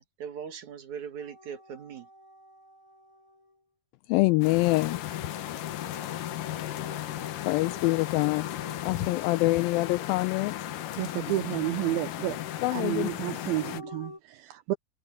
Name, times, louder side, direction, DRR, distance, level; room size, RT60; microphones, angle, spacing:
voice 1, 0.0-2.1, right 7 dB, 55° right, 2.8 m, -40 dB
sound 1, 1.2-3.6 4.7-14.2, left 3 dB, 5° left, 7.0 m, -48 dB
voice 2, 4.1-5.0 7.4-8.4 8.8-10.5 12.6-13.1, left 21 dB, 85° left, 2.1 m, -25 dB
sound 2, 4.4-13.8, left 13 dB, 70° left, 2.3 m, -36 dB
voice 3, 11.0-12.4 12.7-14.7, right 16 dB, 80° right, 2.4 m, -30 dB
omnidirectional pair, 4.7 m